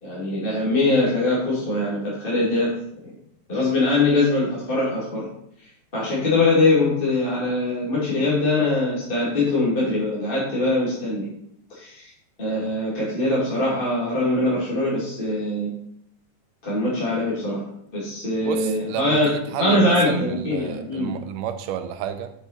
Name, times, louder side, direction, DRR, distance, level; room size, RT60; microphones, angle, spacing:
voice 1, 0.0-2.8 3.5-5.3 5.9-11.3 11.7-12.1 12.4-15.7 16.6-17.6 17.9-21.1, left 2 dB, 15° left, -7 dB, 2.4 m, -22 dB
voice 2, 18.4-22.3, right 9 dB, 80° right, 9 dB, 2.1 m, -31 dB
7.2 x 6.8 x 4.4 m, 0.73 s
omnidirectional pair, 3.8 m